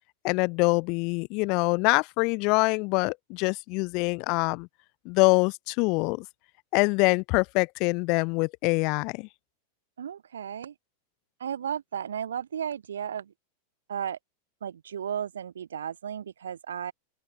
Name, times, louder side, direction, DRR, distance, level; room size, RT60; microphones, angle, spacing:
voice 1, 0.2-4.7 5.1-6.3 6.7-9.3, left 29 dB, 45° left, 0.4 m, -25 dB
voice 2, 10.0-10.7 11.4-13.3 13.9-14.2 14.6-16.9, right 8 dB, 65° right, 0.9 m, -34 dB
open air
figure-of-eight pair, 90°, 0 cm